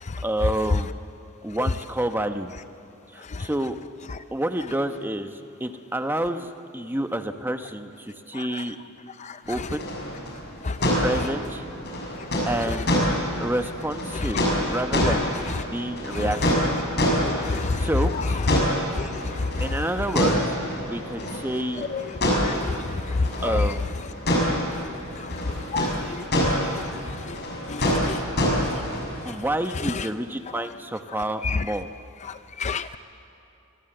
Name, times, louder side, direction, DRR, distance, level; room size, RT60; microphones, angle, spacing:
voice 1, 0.2-0.9 1.4-2.5 3.1-3.8 4.3-8.8 9.5-9.9 11.0-11.6 12.5-13.0 13.4-15.3 15.7-16.6 17.2-18.4 19.6-20.4 20.8-21.9 23.4-24.1 29.2-31.9, right 1 dB, 10° right, 7 dB, 0.9 m, -29 dB
sound 1, 9.4-29.2, equal, 50° left, 6.6 m, -27 dB
voice 2, 17.3-17.9 19.0-19.1 21.9-22.0 22.4-22.5 25.7-26.2 26.4-26.5 27.7-28.2 31.4-31.6 32.6-33.0, left 4 dB, 30° left, 11 dB, 0.5 m, -29 dB
24.5 x 23.0 x 7.8 m, 2.9 s
head